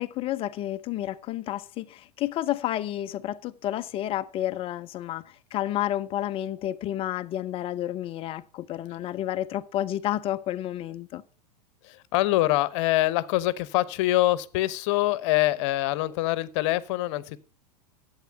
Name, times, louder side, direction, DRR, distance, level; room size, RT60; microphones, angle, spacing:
voice 1, 0.0-5.2 5.5-11.2, left 13 dB, 25° left, 0.5 m, -30 dB
voice 2, 11.8-17.4, left 17 dB, 45° left, 0.8 m, -24 dB
11.5 x 8.1 x 5.6 m
figure-of-eight pair, 95°, 20 cm